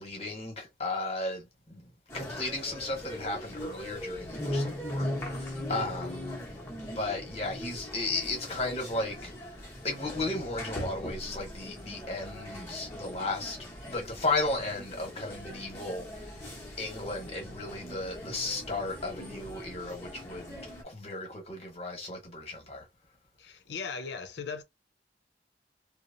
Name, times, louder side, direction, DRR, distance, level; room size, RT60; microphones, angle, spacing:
voice 1, 0.0-1.9 2.1-6.4 6.8-9.3 9.8-13.6 13.8-16.4 16.8-22.9, left 2 dB, 35° left, 1.0 m, -35 dB
sound 1, 2.1-20.8, left 1 dB, 15° left, 0.8 m, -40 dB
voice 2, 23.4-24.6, left 5 dB, 75° left, 0.5 m, -38 dB
2.9 x 2.0 x 2.5 m
head